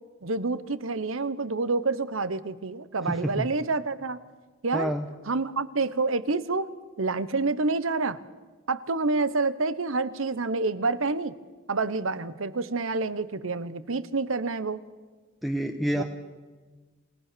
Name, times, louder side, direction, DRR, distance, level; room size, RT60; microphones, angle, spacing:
voice 1, 0.2-4.2 4.6-5.0 5.3-6.7 7.0-8.2 8.7-11.4 11.7-14.8 15.9-16.0, right 3 dB, 85° right, 15 dB, 1.0 m, -28 dB
voice 2, 3.1-3.5 4.7-5.1 15.4-16.0, equal, ahead, 4 dB, 1.0 m, -28 dB
28.0 x 18.0 x 6.9 m, 1.3 s
head